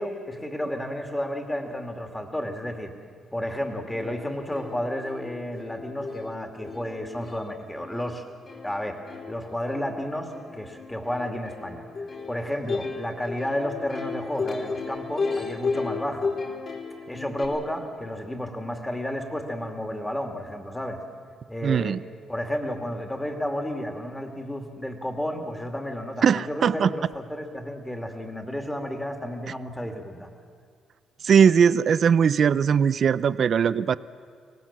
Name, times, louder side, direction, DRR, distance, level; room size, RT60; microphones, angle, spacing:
voice 1, 0.0-2.9 3.3-8.2 8.6-11.8 12.3-16.3 17.1-21.0 21.5-22.0 22.3-30.3, left 1 dB, 10° left, 4 dB, 2.5 m, -32 dB
Plucked string instrument, 3.6-3.7 3.9-17.5, left 4 dB, 50° left, 3.8 m, -34 dB
voice 2, 21.6-22.0 26.2-26.9 31.2-34.0, right 7 dB, 55° right, 16 dB, 0.5 m, -20 dB
24.0 x 18.5 x 7.3 m, 2.1 s
cardioid pair, 90°, 0 cm